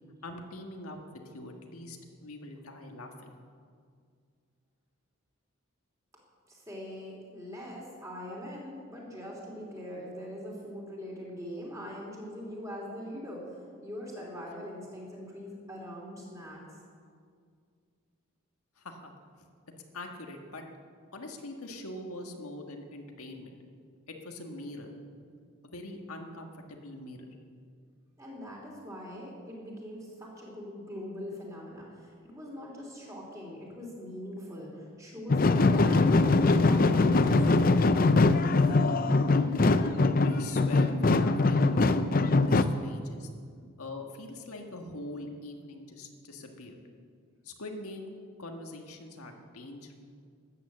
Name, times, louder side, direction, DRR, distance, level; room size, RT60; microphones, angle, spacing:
voice 1, 0.2-3.4 18.8-19.1 19.9-20.6 21.1-23.5 24.1-24.9 25.6-27.2 40.2-43.3 43.8-46.8 47.4-48.1 48.4-49.9, left 2 dB, 90° left, 3 dB, 1.6 m, -43 dB
voice 2, 6.5-13.4 13.8-16.6 28.2-37.7, left 1 dB, 15° right, -3 dB, 3.2 m, -42 dB
sound 1, 35.3-42.6, left 3 dB, 40° left, 0.5 m, -22 dB
13.0 x 9.2 x 7.4 m, 2.1 s
head